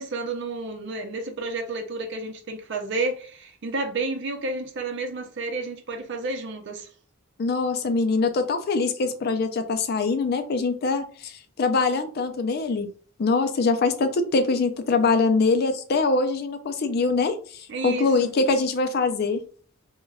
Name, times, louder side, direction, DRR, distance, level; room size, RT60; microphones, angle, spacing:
voice 1, 0.0-6.9 17.7-18.3, right 3 dB, 60° right, 0.5 m, -31 dB
voice 2, 7.4-12.9 13.2-19.4, left 3 dB, 50° left, 0.4 m, -23 dB
3.3 x 2.2 x 2.3 m
head